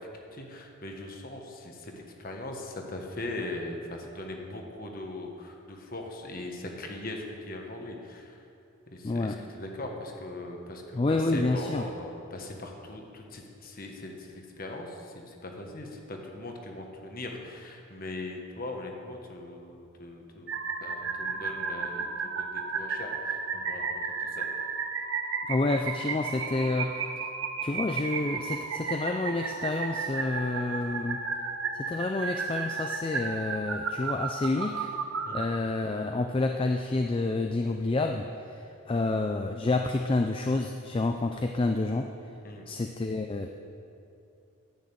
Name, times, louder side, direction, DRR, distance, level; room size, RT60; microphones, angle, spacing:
voice 1, 0.3-1.9 2.2-8.4 8.9-24.5 35.3-35.5 38.9-39.1 42.4-42.7, left 2 dB, 40° left, 2 dB, 1.3 m, -40 dB
voice 2, 9.0-9.4 10.9-11.8 25.5-27.0 27.6-31.2 31.7-34.9 35.3-42.1 42.7-43.5, left 2 dB, 25° left, 4 dB, 0.3 m, -29 dB
sound 1, 20.5-35.5, right 5 dB, 60° right, 0.8 m, -33 dB
10.5 x 6.5 x 8.0 m, 2.7 s
head